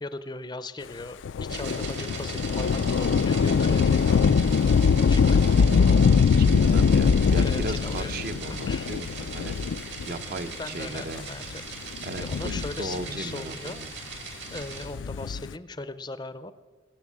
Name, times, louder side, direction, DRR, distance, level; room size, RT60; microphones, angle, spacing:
voice 1, 0.0-4.3 5.1-5.4 7.3-8.1 8.5-8.9 10.6-11.4 11.9-12.0 12.2-13.8 14.5-16.5, left 2 dB, 20° left, 13 dB, 0.5 m, -38 dB
Thunder / Rain, 1.2-10.2 11.0-11.1 12.0-13.3 14.8-15.5, left 5 dB, 70° left, 0.3 m, -22 dB
sound 1, 1.5-14.9, right 5 dB, 65° right, 2.8 m, -39 dB
voice 2, 5.6-9.6 10.1-11.2 12.0-13.9, right 2 dB, 50° right, 9 dB, 0.7 m, -37 dB
18.5 x 8.1 x 7.4 m, 1.4 s
head